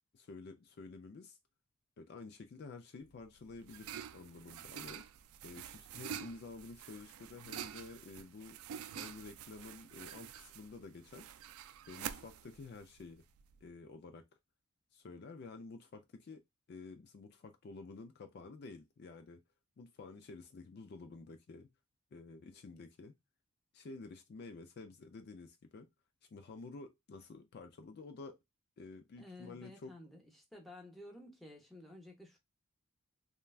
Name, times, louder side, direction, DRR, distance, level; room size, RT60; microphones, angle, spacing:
voice 1, 0.1-1.4 2.0-5.1 5.4-11.3 11.9-13.2 13.6-14.2 14.9-16.4 16.7-19.4 19.8-21.7 22.1-23.1 23.7-25.9 26.3-28.4 28.8-29.9, left 3 dB, 50° left, 0.4 m, -51 dB
sound 1, 3.1-13.6, right 9 dB, 85° right, 0.3 m, -48 dB
voice 2, 29.1-32.4, left 1 dB, ahead, 0.8 m, -53 dB
3.2 x 2.2 x 2.3 m
head